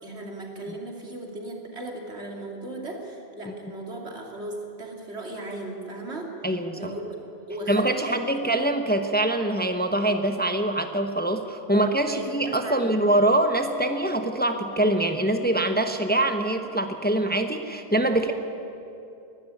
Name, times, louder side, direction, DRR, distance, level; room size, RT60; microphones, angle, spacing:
voice 1, 0.0-6.4 6.7-7.0 7.5-8.7 11.7-13.0 18.1-18.2, right 2 dB, 80° right, 0 dB, 3.2 m, -37 dB
voice 2, 6.4-6.9 7.7-18.3, right 1 dB, 10° left, 6 dB, 1.0 m, -24 dB
22.0 x 12.5 x 10.0 m, 2.8 s
omnidirectional pair, 1.1 m